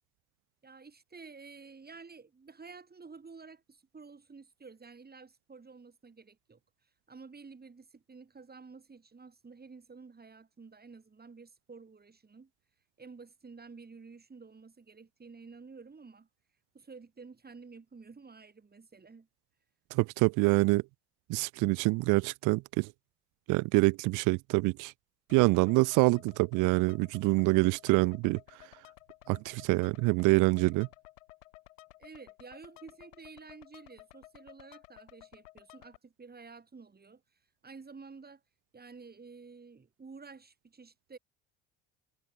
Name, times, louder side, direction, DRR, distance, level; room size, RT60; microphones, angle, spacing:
voice 1, 0.6-12.5 13.0-16.3 16.7-19.3 32.0-38.4 38.7-41.2, right 4 dB, 25° right, 5.2 m, -51 dB
voice 2, 19.9-20.8 21.3-22.9 23.5-24.9 25.3-28.4 29.3-30.9, right 25 dB, 55° right, 0.6 m, -26 dB
sound 1, 25.3-36.0, left 17 dB, 75° left, 2.1 m, -56 dB
figure-of-eight pair, 55°, 38 cm